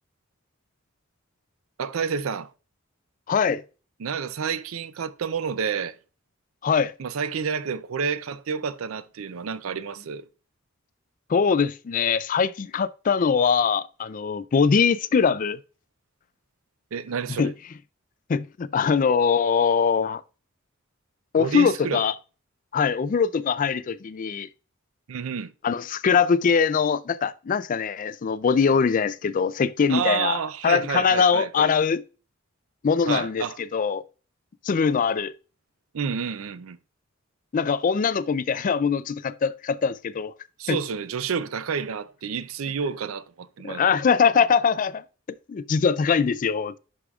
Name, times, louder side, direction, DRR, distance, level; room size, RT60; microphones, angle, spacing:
voice 1, 1.8-2.5 4.0-6.0 7.0-10.2 16.9-17.5 21.4-22.0 25.1-25.5 29.9-31.7 33.1-33.6 35.9-36.8 40.6-43.8, right 6 dB, 85° right, 0.5 m, -29 dB
voice 2, 3.3-3.6 6.6-6.9 11.3-15.6 17.4-17.5 18.3-20.2 21.3-22.1 22.7-24.5 25.6-32.0 32.8-34.0 34.6-35.3 37.5-40.3 40.7-40.8 43.6-45.0 45.5-46.8, left 6 dB, 40° left, 0.3 m, -22 dB
11.0 x 4.9 x 2.4 m
head